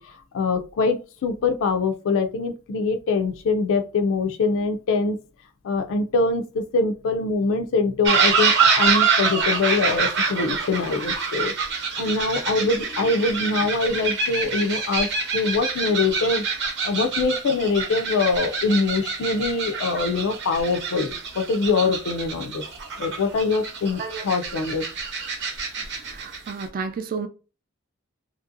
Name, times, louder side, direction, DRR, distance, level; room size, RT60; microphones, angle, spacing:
voice 1, 0.0-5.2 5.6-22.6 23.0-24.8, left 3 dB, 65° left, 0.4 m, -24 dB
sound 1, 8.0-26.6, right 5 dB, 55° right, 0.9 m, -26 dB
voice 2, 26.1-27.3, right 5 dB, 40° right, 0.4 m, -31 dB
2.9 x 2.6 x 2.5 m
head